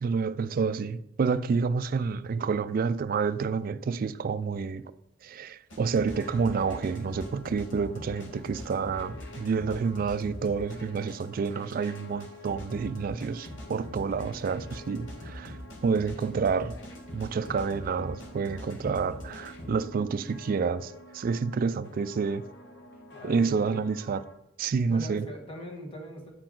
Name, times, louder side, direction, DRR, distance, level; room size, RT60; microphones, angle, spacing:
voice 1, 0.0-4.9 5.2-15.6 15.8-16.8 17.1-22.4 23.2-24.2 24.6-25.3, right 5 dB, 50° right, 0.3 m, -29 dB
sound 1, 5.7-19.7, left 1 dB, 85° left, 1.4 m, -43 dB
sound 2, 5.9-24.4, left 1 dB, 65° left, 0.9 m, -49 dB
voice 2, 23.1-23.8 24.9-26.3, equal, 30° left, 1.5 m, -41 dB
9.5 x 4.6 x 3.8 m
head